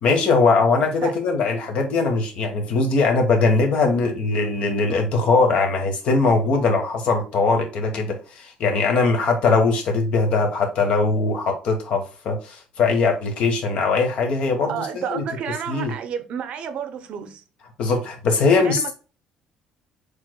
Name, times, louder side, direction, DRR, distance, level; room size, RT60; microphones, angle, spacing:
voice 1, 0.0-15.2 15.7-15.9 17.8-18.9, left 3 dB, 45° left, 1.3 m, -21 dB
voice 2, 14.7-17.4 18.4-18.9, right 8 dB, 50° right, 0.7 m, -31 dB
6.9 x 3.2 x 2.3 m
cardioid pair, 170°, 3 cm